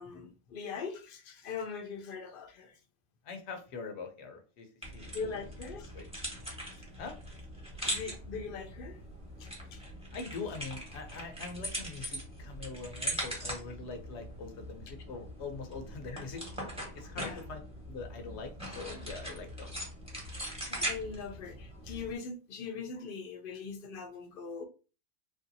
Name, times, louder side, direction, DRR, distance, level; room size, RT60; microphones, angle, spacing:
voice 1, 0.0-2.8 5.1-5.9 7.8-9.0 9.4-9.8 16.1-16.2 17.2-17.4 20.3-24.6, left 5 dB, 60° left, 0.7 m, -41 dB
voice 2, 3.2-5.1 5.9-6.1 7.0-7.2 10.1-16.4 16.9-17.6 17.9-19.7, left 4 dB, 75° left, 1.0 m, -43 dB
sound 1, 4.8-22.2, equal, 5° right, 1.1 m, -41 dB
3.3 x 2.7 x 2.6 m
omnidirectional pair, 1.1 m